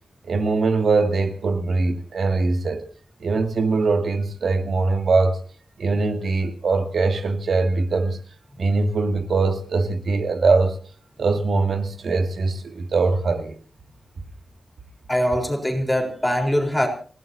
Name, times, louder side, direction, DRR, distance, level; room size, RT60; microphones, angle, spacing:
voice 1, 0.3-2.9 3.2-5.4 5.8-8.2 8.6-10.7 11.2-13.5, right 3 dB, 60° right, 2.3 m, -22 dB
voice 2, 15.1-16.9, equal, 5° left, 4.1 m, -22 dB
30.0 x 16.5 x 2.8 m
wide cardioid pair, 130°, 0 cm